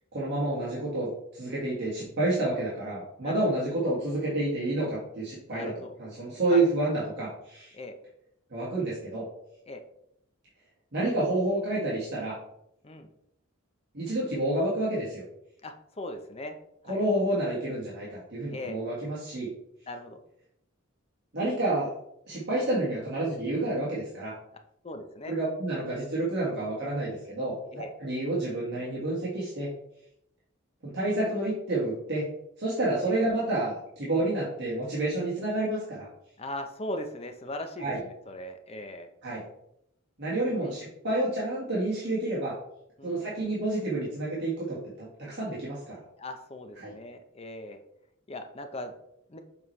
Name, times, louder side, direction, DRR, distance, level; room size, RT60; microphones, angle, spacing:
voice 1, 0.1-5.7 6.0-7.7 8.5-9.2 10.9-12.4 13.9-15.2 16.9-19.5 21.3-21.9 22.3-24.3 25.3-29.7 30.8-32.2 32.6-36.1 37.8-38.0 39.2-39.4 40.2-42.6 43.0-46.0 46.8-46.9, right 2 dB, 55° right, -7 dB, 1.7 m, -29 dB
voice 2, 3.2-3.6 5.5-6.0 6.5-6.7 7.7-7.9 9.7-9.8 12.8-13.1 15.6-16.6 16.9-17.0 18.5-18.8 19.9-20.2 24.8-25.4 27.7-27.9 36.4-39.1 40.5-40.7 43.0-43.2 46.2-47.8 48.3-48.9 49.3-49.4, left 1 dB, 30° left, 6 dB, 0.6 m, -39 dB
7.0 x 4.5 x 3.2 m, 0.77 s
head